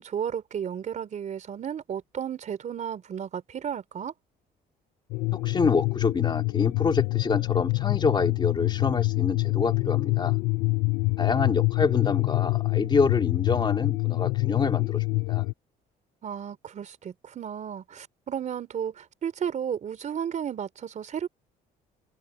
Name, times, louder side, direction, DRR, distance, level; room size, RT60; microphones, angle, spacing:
voice 1, 0.0-4.1 16.2-21.3, right 8 dB, 45° right, 3.5 m, -33 dB
sound 1, 5.1-15.5, left 25 dB, 85° left, 0.6 m, -26 dB
voice 2, 5.3-10.4 11.2-15.4, left 4 dB, 25° left, 3.2 m, -27 dB
cardioid pair, 110°, 17 cm